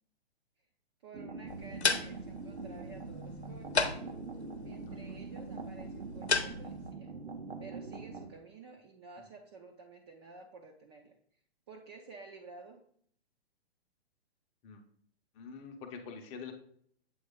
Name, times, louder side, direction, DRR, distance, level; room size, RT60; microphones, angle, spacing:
voice 1, 1.0-3.8 4.6-7.1 7.6-11.1 11.7-12.8, right 4 dB, 25° right, 1 dB, 0.5 m, -52 dB
sound 1, 1.1-8.3, right 3 dB, 85° right, 0.9 m, -43 dB
sound 2, 1.5-6.9, left 4 dB, 90° left, 0.8 m, -36 dB
voice 2, 15.3-16.5, left 6 dB, 20° left, 4 dB, 0.7 m, -46 dB
7.8 x 3.3 x 3.6 m, 0.63 s
figure-of-eight pair, 120°, 32 cm